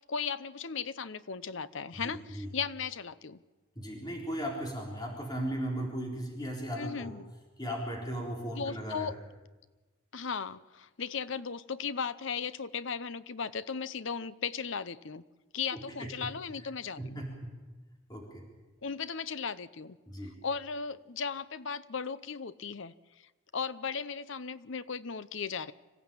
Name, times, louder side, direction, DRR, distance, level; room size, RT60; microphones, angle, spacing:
voice 1, 0.1-3.4 6.8-7.3 8.5-9.1 10.1-15.2 15.5-17.2 18.8-20.0 20.4-22.9 23.5-25.7, left 6 dB, 60° left, 15 dB, 0.7 m, -36 dB
voice 2, 1.9-2.5 3.8-7.1 7.6-9.1 15.7-16.3 17.0-17.5 18.1-18.4 20.1-20.3, equal, 20° left, -1 dB, 4.0 m, -37 dB
26.0 x 15.0 x 8.9 m, 1.2 s
head